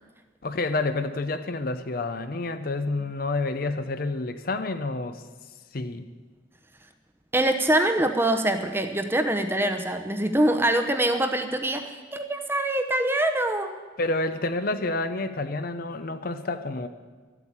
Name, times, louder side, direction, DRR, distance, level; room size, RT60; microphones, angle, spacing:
voice 1, 0.4-5.2 5.7-6.1 14.0-16.9, left 2 dB, 45° left, 10 dB, 0.6 m, -29 dB
voice 2, 7.3-13.7, right 1 dB, 10° right, 6 dB, 0.8 m, -24 dB
12.5 x 8.4 x 8.6 m, 1.4 s
head